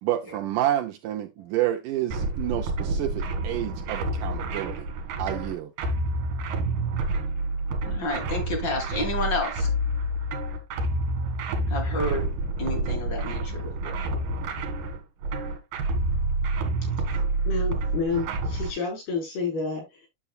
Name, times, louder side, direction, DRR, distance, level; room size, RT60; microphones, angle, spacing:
voice 1, 0.0-4.9 5.2-5.7, right 13 dB, 85° right, 1.8 m, -29 dB
sound 1, 2.1-18.7, right 2 dB, 65° right, 3.1 m, -28 dB
voice 2, 7.8-9.7 11.7-14.1, left 2 dB, 35° left, 2.2 m, -31 dB
voice 3, 17.5-20.1, left 4 dB, 90° left, 6.0 m, -30 dB
10.0 x 6.9 x 2.2 m
omnidirectional pair, 4.3 m